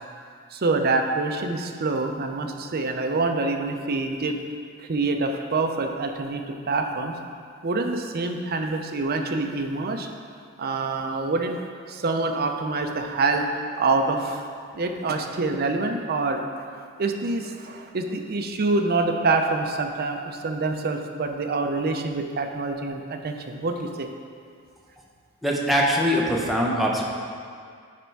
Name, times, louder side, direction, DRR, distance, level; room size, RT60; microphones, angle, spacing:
voice 1, 0.5-4.4 4.8-7.1 7.6-10.1 10.6-11.6 11.9-13.5 13.8-14.4 14.7-16.4 17.0-24.1, right 3 dB, 45° right, 5 dB, 0.5 m, -26 dB
voice 2, 25.4-27.0, equal, ahead, -3 dB, 0.7 m, -22 dB
9.4 x 3.4 x 4.6 m, 2.2 s
head